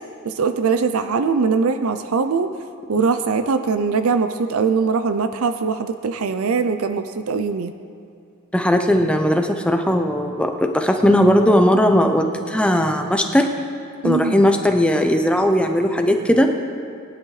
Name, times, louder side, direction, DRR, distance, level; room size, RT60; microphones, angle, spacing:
voice 1, 0.2-2.5 2.9-7.7 14.0-14.4, right 5 dB, 75° right, 9 dB, 0.5 m, -21 dB
voice 2, 8.5-13.5 14.0-16.5, equal, 5° left, 4 dB, 0.6 m, -18 dB
21.0 x 10.5 x 3.3 m, 2.4 s
head